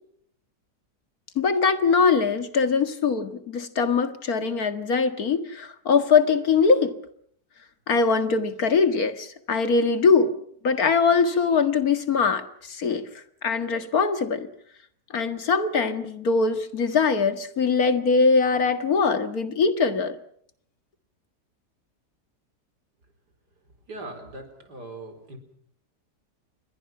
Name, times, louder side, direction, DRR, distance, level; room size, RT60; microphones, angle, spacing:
voice 1, 1.4-6.9 7.9-10.3 10.6-13.1 13.4-14.5 15.1-20.2, left 5 dB, 65° left, 10 dB, 2.2 m, -22 dB
voice 2, 23.9-25.4, right 2 dB, 85° right, 7 dB, 4.8 m, -40 dB
28.5 x 22.5 x 6.0 m, 0.66 s
omnidirectional pair, 1.7 m